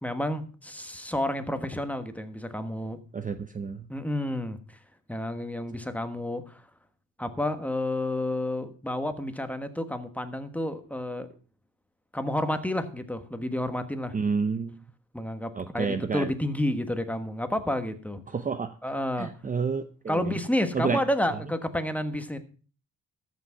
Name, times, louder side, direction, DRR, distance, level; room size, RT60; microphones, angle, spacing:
voice 1, 0.0-3.0 3.9-4.8 5.1-6.6 7.2-11.3 12.1-14.1 15.1-18.2 18.8-19.3 20.1-22.4, left 1 dB, 5° left, 8 dB, 1.3 m, -30 dB
voice 2, 3.1-3.8 14.1-14.8 15.6-16.3 18.3-18.7 19.2-20.3 20.7-21.0, right 5 dB, 25° right, 10 dB, 0.7 m, -29 dB
13.5 x 6.2 x 5.8 m, 0.39 s
cardioid pair, 95°, 32 cm